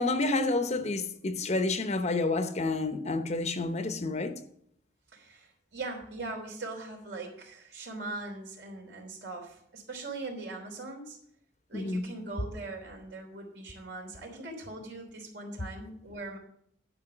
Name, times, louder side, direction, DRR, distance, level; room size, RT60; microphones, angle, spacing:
voice 1, 0.0-4.4 11.7-12.0, left 2 dB, 40° left, 0.8 m, -29 dB
voice 2, 5.1-11.2 11.7-16.4, right 2 dB, 70° right, 3.3 m, -41 dB
11.0 x 5.3 x 7.7 m
head